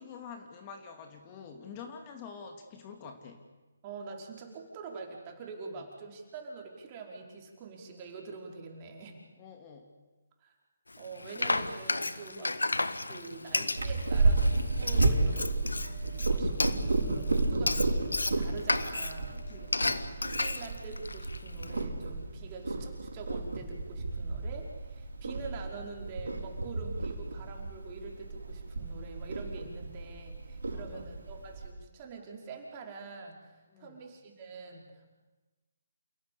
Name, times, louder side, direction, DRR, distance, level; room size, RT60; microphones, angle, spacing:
voice 1, 0.0-3.4 5.7-5.9 9.4-9.9 12.3-12.6 19.3-20.1 30.7-31.0 33.7-34.0, left 6 dB, 25° left, 4 dB, 2.5 m, -47 dB
voice 2, 3.8-9.2 10.4-10.5 11.0-12.8 13.1-15.5 16.2-19.3 19.9-35.1, right 4 dB, 30° right, 1 dB, 4.8 m, -45 dB
Frying (food), 10.9-21.8, left 2 dB, 90° left, 1.4 m, -33 dB
Purr, 13.7-31.7, right 2 dB, 75° right, 5.3 m, -32 dB
28.5 x 17.0 x 8.5 m, 1.2 s
figure-of-eight pair, 150°, 0 cm